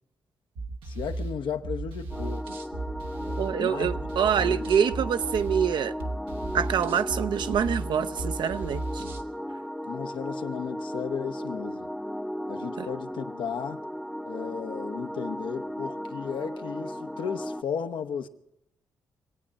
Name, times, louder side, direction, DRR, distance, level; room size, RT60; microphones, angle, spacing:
sound 1, 0.6-9.3, right 2 dB, 85° right, 1.1 m, -35 dB
voice 1, 0.8-2.5 3.2-4.1 4.4-4.6 9.9-11.9 12.5-13.8 14.2-18.3, left 7 dB, 75° left, 0.9 m, -35 dB
sound 2, 2.1-17.6, equal, 5° left, 0.6 m, -36 dB
voice 2, 3.4-5.9 6.5-9.0 12.8-12.9, right 8 dB, 65° right, 0.6 m, -26 dB
25.0 x 8.7 x 6.3 m
supercardioid pair, 60°, 8 cm